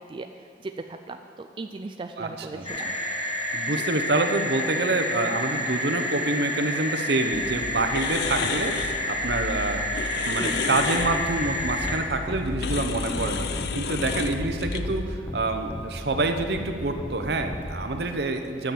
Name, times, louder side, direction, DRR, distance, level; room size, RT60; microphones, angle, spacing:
voice 1, 1.1-2.9 10.4-10.5, right 3 dB, 30° right, 6 dB, 0.3 m, -37 dB
voice 2, 2.2-3.0 3.5-9.9 10.2-18.7, right 2 dB, 70° right, 6 dB, 0.8 m, -27 dB
sound 1, 2.6-12.0, left 1 dB, 30° left, 1.2 m, -29 dB
sound 2, 7.3-15.0, left 5 dB, 65° left, 0.5 m, -32 dB
sound 3, 11.0-11.1 11.4-11.5 11.8-12.0 12.3-12.4 12.7-12.8 13.1-13.2 13.5-13.7 14.0-14.5 14.8-15.0 15.3-15.4 15.7-15.8 16.1-16.2 16.5-16.7 17.0-17.1 17.4-17.6, left 1 dB, 10° left, 0.9 m, -34 dB
9.6 x 7.2 x 7.5 m, 2.4 s
head